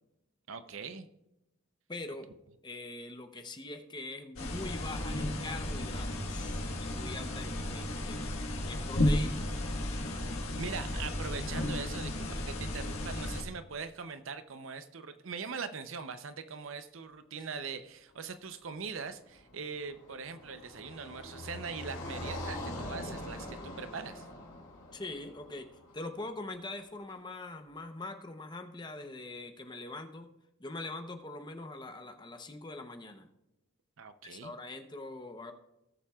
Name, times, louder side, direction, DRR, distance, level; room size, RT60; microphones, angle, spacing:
voice 1, 0.5-1.1 9.9-10.1 10.6-24.3 34.0-34.5, right 5 dB, 65° right, 10 dB, 0.7 m, -41 dB
voice 2, 1.9-2.3 2.6-10.3 24.9-25.7 25.9-30.3 30.6-33.3 34.2-35.5, left 2 dB, 20° left, 7 dB, 0.7 m, -43 dB
sound 1, 4.4-13.4, left 1 dB, 85° left, 1.5 m, -34 dB
Car passing by, 19.2-26.5, left 1 dB, 70° left, 2.8 m, -43 dB
18.5 x 7.2 x 2.4 m, 0.89 s
head